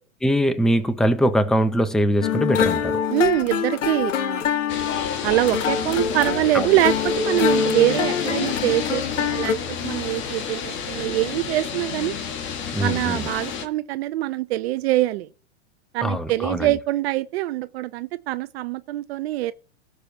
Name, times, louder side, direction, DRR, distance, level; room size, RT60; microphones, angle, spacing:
voice 1, 0.2-3.0 6.5-6.7 12.7-13.3 16.0-16.7, equal, ahead, 0.6 m, -22 dB
sound 1, 2.2-9.5, left 7 dB, 75° left, 1.2 m, -25 dB
voice 2, 3.1-4.4 5.2-12.1 12.8-15.3 15.9-19.5, right 15 dB, 55° right, 0.7 m, -24 dB
sound 2, 4.7-13.7, left 7 dB, 30° left, 1.4 m, -30 dB
16.5 x 6.9 x 2.9 m
hypercardioid pair, 135°, 38 cm